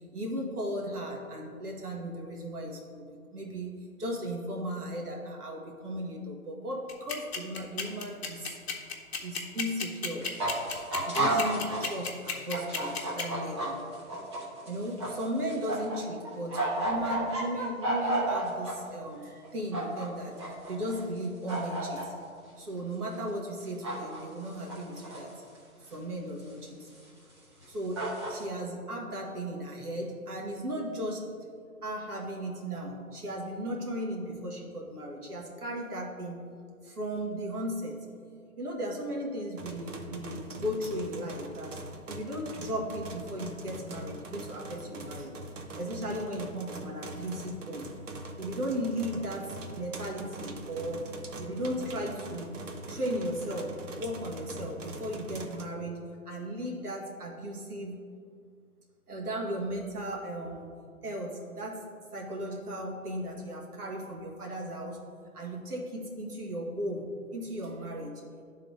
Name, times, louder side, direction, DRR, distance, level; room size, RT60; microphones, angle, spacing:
voice 1, 0.0-3.0 3.3-8.6 9.2-10.3 11.1-13.8 14.6-20.4 20.7-22.1 22.6-25.4 25.8-26.9 27.7-31.3 31.8-36.4 36.8-38.0 38.6-45.3 45.8-47.9 48.4-51.1 51.4-52.5 52.9-56.0 56.3-58.0 59.1-60.7 61.0-61.8 62.1-65.0 65.3-67.1 67.3-68.2, equal, 85° right, -2 dB, 1.7 m, -36 dB
sound 1, 6.9-13.2, left 6 dB, 45° left, 0.9 m, -32 dB
sound 2, 10.2-12.0 12.3-16.0 16.2-18.7 19.4-20.1 20.4-21.2 21.5-22.0 23.8-24.2 24.5-25.4 25.9-26.0 27.0-27.1 27.6-27.7 28.0-28.4, right 1 dB, 20° right, 0.8 m, -32 dB
sound 3, 39.6-55.7, right 2 dB, 55° right, 0.8 m, -42 dB
11.0 x 3.7 x 3.5 m, 2.3 s
hypercardioid pair, 155°, 44 cm